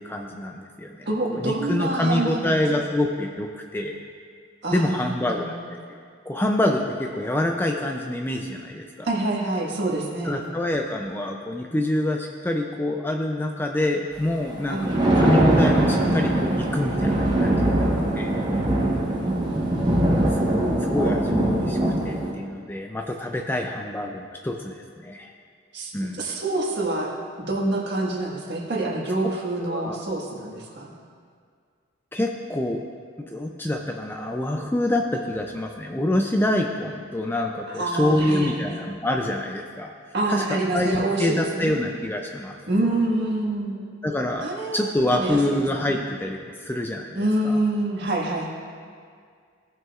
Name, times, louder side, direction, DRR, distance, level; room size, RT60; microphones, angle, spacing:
voice 1, 0.0-4.0 4.7-5.6 6.3-9.1 10.2-14.9 15.1-17.9 18.2-18.4 20.4-21.8 22.0-25.3 25.9-26.2 29.7-30.0 32.1-32.8 33.3-39.9 40.3-42.6 42.8-42.9 44.0-47.6, left 1 dB, 10° left, 2 dB, 0.4 m, -26 dB
voice 2, 1.0-2.6 4.6-5.6 9.0-10.4 14.7-15.0 19.2-20.1 25.7-25.9 26.2-27.1 27.5-30.9 37.7-38.8 40.1-41.9 42.7-43.8 44.4-46.1 47.1-48.5, right 2 dB, 50° right, -3 dB, 1.5 m, -27 dB
Thunder, 14.6-22.3, right 1 dB, 20° right, 1.1 m, -22 dB
17.0 x 6.0 x 2.4 m, 2.1 s
head